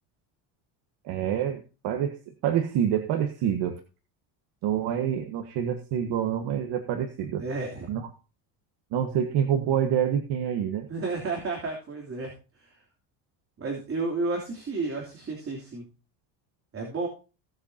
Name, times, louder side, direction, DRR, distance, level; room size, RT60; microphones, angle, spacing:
voice 1, 1.0-3.8 4.6-7.4 7.9-8.1 8.9-10.9, right 9 dB, 70° right, 6 dB, 1.6 m, -27 dB
voice 2, 7.4-7.9 10.9-12.3 13.6-15.8 16.7-17.1, right 3 dB, 30° right, 1 dB, 3.2 m, -31 dB
17.0 x 8.1 x 2.8 m, 0.33 s
cardioid pair, 120°, 43 cm